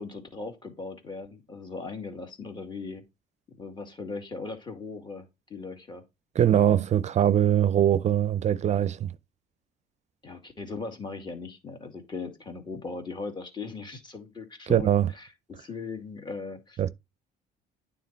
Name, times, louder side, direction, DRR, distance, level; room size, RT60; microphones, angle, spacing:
voice 1, 0.0-3.0 3.6-5.2 5.5-6.0 10.2-16.8, left 4 dB, 25° left, 2.0 m, -38 dB
voice 2, 6.4-9.1 14.7-15.1 16.8-16.9, right 10 dB, 45° right, 0.5 m, -22 dB
9.3 x 3.8 x 4.4 m
cardioid pair, 110°, 17 cm